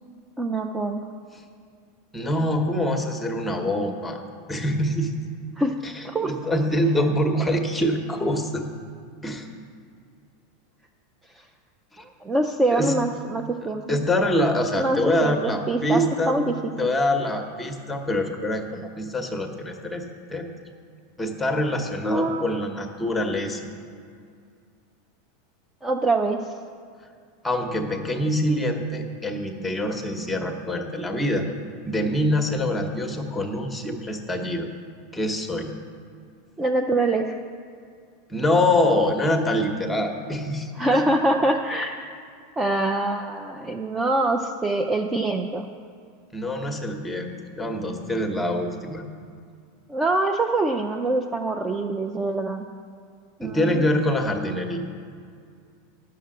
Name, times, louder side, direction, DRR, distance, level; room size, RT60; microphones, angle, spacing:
voice 1, 0.4-1.0 5.6-5.7 6.0-6.3 12.0-14.0 14.7-16.5 22.0-22.4 25.8-26.5 36.6-37.4 40.8-42.0 42.6-45.7 49.9-52.6 53.4-53.8, right 2 dB, 10° right, 3 dB, 0.5 m, -24 dB
voice 2, 2.1-4.2 4.5-5.1 5.8-8.6 9.2-9.5 12.0-12.1 12.7-12.9 13.9-16.4 16.8-20.0 20.3-20.5 21.2-23.6 27.4-31.5 31.8-34.7 35.1-35.7 38.3-40.7 46.3-49.0 53.4-54.8, left 1 dB, 5° left, 4 dB, 1.0 m, -25 dB
10.5 x 6.7 x 7.6 m, 2.2 s
supercardioid pair, 150°, 0 cm